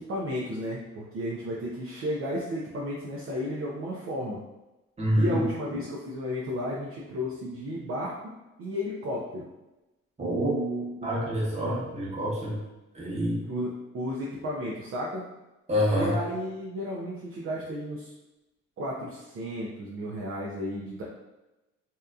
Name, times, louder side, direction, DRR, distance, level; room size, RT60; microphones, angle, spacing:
voice 1, 0.0-4.4 5.1-8.1 8.6-9.4 10.2-10.9 13.4-15.2 16.0-18.1 18.8-21.0, equal, 45° right, -4 dB, 0.5 m, -33 dB
voice 2, 5.0-5.5 10.2-10.5 11.0-12.6 12.9-13.4 15.7-16.1, equal, 20° right, -6 dB, 1.1 m, -27 dB
2.7 x 2.3 x 2.3 m, 1.0 s
cardioid pair, 90°, 30 cm